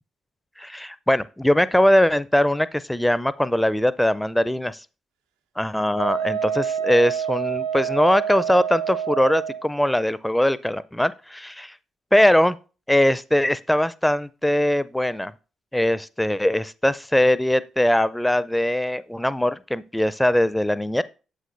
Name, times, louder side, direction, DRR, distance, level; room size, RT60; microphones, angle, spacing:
voice 1, 0.6-4.8 5.6-11.7 12.1-12.6 12.9-15.3 15.7-21.0, left 1 dB, 5° left, 0.4 m, -21 dB
Wind instrument woodwind instrument, 6.0-9.6, right 8 dB, 70° right, 0.4 m, -27 dB
8.2 x 7.5 x 2.5 m
figure-of-eight pair, 45°, 0 cm